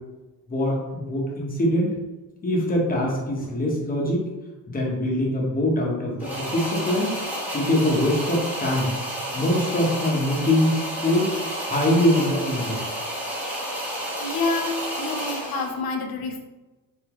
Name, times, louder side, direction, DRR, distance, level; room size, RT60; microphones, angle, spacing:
voice 1, 0.5-2.0 2.4-4.3 4.7-7.1 7.5-8.9 9.3-11.4 11.6-12.8, left 1 dB, 25° left, -2 dB, 1.0 m, -23 dB
sound 1, 6.2-15.8, equal, 5° right, 1.1 m, -31 dB
voice 2, 14.2-16.4, left 3 dB, 85° left, 4 dB, 0.8 m, -28 dB
4.2 x 3.8 x 3.0 m, 1.1 s
wide cardioid pair, 165°, 35 cm